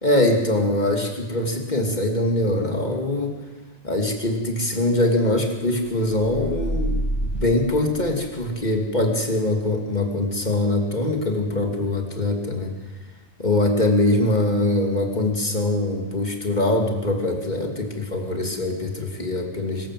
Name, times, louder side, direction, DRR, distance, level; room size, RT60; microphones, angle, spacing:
voice 1, 0.0-3.3 3.8-7.0 7.3-12.7 13.4-19.9, left 1 dB, 45° left, 3 dB, 3.0 m, -23 dB
sound 1, 6.1-8.6, right 1 dB, 25° left, 4.1 m, -28 dB
24.5 x 14.0 x 7.7 m, 1.2 s
omnidirectional pair, 1.1 m